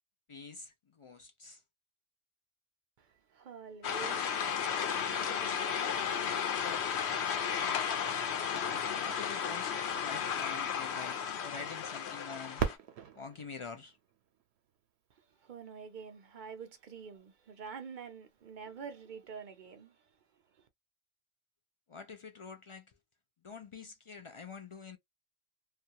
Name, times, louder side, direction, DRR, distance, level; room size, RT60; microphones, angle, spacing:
voice 1, 0.3-1.6 7.0-7.3 7.5-7.7 8.3-8.7 9.0-12.6 13.2-14.0 21.9-22.9 23.4-25.0, left 5 dB, 50° left, 0.3 m, -47 dB
voice 2, 3.0-6.2 15.1-20.7, right 6 dB, 55° right, 0.6 m, -48 dB
sound 1, 3.8-12.8, left 7 dB, 85° left, 0.9 m, -34 dB
Fireworks, 12.6-15.3 16.0-16.1 16.8-17.3 19.2-19.3, right 7 dB, 80° right, 0.9 m, -39 dB
2.4 x 2.2 x 2.7 m
omnidirectional pair, 1.1 m